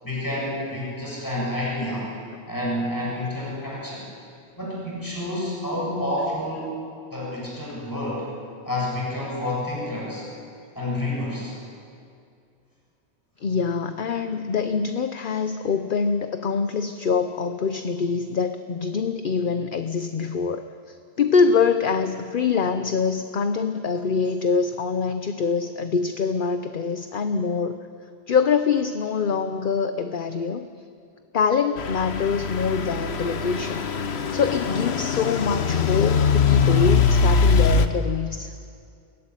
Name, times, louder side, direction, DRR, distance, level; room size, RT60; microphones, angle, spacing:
voice 1, 0.0-2.1 2.5-4.1 4.6-6.7 7.1-8.3 8.7-10.3 10.8-11.5, left 1 dB, 20° left, -5 dB, 7.4 m, -29 dB
voice 2, 13.4-27.8 28.3-30.7 31.3-33.9 34.3-38.5, left 5 dB, 55° left, 9 dB, 0.9 m, -24 dB
Truck / Idling, 31.8-37.9, left 5 dB, 80° left, 1.3 m, -22 dB
22.0 x 17.5 x 9.9 m, 2.4 s
omnidirectional pair, 1.1 m